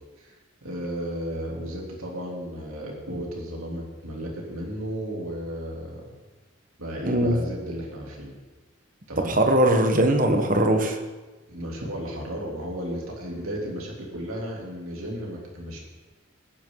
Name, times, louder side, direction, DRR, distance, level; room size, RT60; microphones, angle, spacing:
voice 1, 0.6-6.0 6.8-8.3 9.1-9.4 11.5-15.8, equal, 90° right, -2 dB, 3.4 m, -34 dB
voice 2, 7.1-7.4 9.2-11.0, right 1 dB, 40° right, 5 dB, 1.4 m, -20 dB
19.5 x 9.7 x 4.0 m, 1.2 s
head